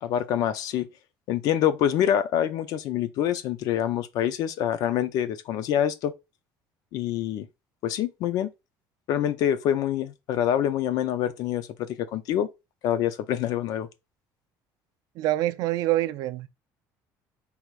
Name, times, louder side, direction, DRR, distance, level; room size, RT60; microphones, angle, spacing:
voice 1, 0.0-0.9 1.3-6.1 6.9-7.5 7.8-8.5 9.1-12.5 12.8-13.9, left 10 dB, 60° left, 0.5 m, -26 dB
voice 2, 15.2-16.5, right 15 dB, 60° right, 0.4 m, -25 dB
4.6 x 3.4 x 2.4 m
cardioid pair, 155°, 7 cm